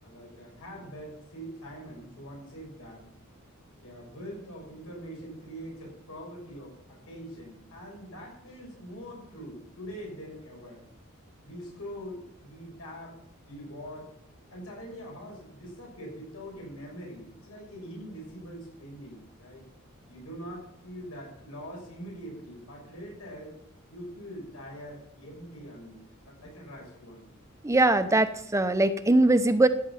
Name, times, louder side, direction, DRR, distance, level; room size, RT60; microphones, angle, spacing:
voice 1, 0.0-3.0 3.8-10.8 11.4-13.1 13.5-14.1 14.5-19.6 20.1-23.6 23.9-26.0 26.3-27.3, equal, 90° left, -2 dB, 6.6 m, -43 dB
voice 2, 27.6-29.7, right 2 dB, 15° right, 10 dB, 0.7 m, -21 dB
13.5 x 10.0 x 5.7 m, 0.76 s
head